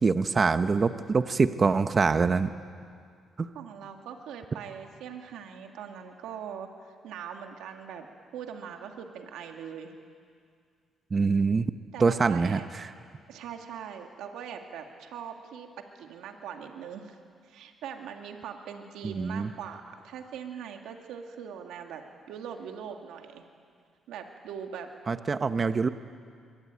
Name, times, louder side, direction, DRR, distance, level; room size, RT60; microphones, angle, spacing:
voice 1, 0.0-2.5 3.4-3.5 11.1-11.7 12.0-12.9 19.0-19.5 25.1-25.9, right 4 dB, 35° right, 11 dB, 0.9 m, -24 dB
voice 2, 3.5-8.1 8.3-9.9 11.9-12.7 13.3-15.7 15.9-17.2 17.4-22.0 22.3-23.4 24.1-24.9, right 7 dB, 90° right, 4 dB, 2.1 m, -41 dB
23.0 x 23.0 x 9.3 m, 2.2 s
cardioid pair, 90°, 0 cm